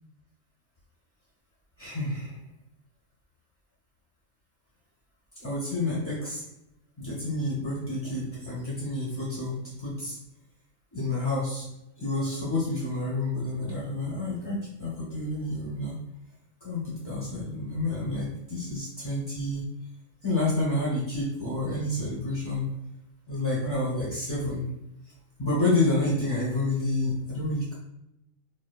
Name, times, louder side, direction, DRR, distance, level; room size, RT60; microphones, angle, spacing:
voice 1, 1.8-2.3 5.4-6.4 7.0-10.2 10.9-11.6 12.0-16.0 16.6-19.6 20.2-22.7 23.3-24.6 25.4-27.7, left 2 dB, 20° left, -7 dB, 0.7 m, -29 dB
4.8 x 2.0 x 2.3 m, 0.87 s
omnidirectional pair, 1.4 m